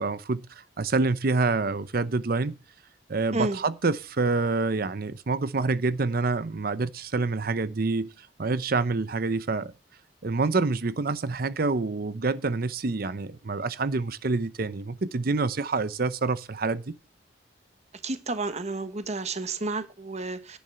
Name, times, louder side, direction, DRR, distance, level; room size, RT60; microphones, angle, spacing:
voice 1, 0.0-2.5 3.1-9.7 10.2-16.9, right 3 dB, 55° right, 0.7 m, -27 dB
voice 2, 18.0-20.6, right 3 dB, 40° right, 1.4 m, -31 dB
11.0 x 9.4 x 5.7 m
head